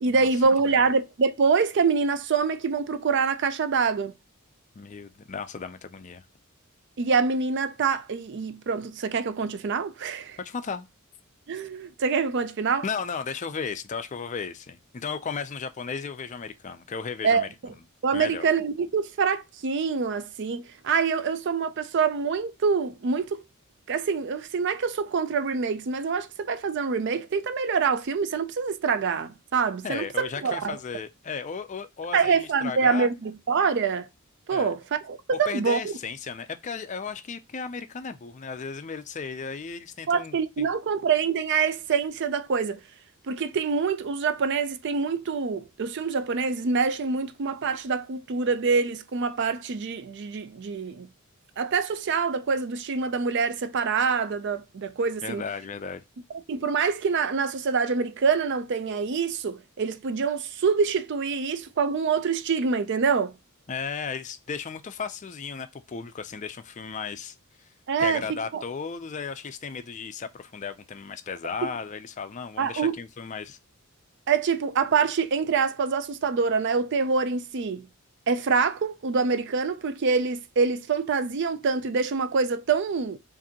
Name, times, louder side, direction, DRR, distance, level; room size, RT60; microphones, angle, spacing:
voice 1, 0.0-4.1 7.0-10.4 11.5-12.8 17.2-17.5 18.0-23.4 23.9-30.8 32.1-34.1 34.5-35.9 40.1-42.8 43.3-51.1 51.6-55.4 56.5-63.3 67.9-68.6 71.6-71.7 72.6-73.0 74.3-77.9 78.3-83.2, right 5 dB, 55° right, 0.4 m, -25 dB
voice 2, 4.8-6.2 10.4-10.9 12.8-17.5 18.1-18.5 29.8-33.1 34.5-34.7 35.3-40.6 55.2-56.0 63.7-67.7 68.0-73.6, left 5 dB, 35° left, 0.4 m, -35 dB
5.0 x 2.6 x 2.8 m
head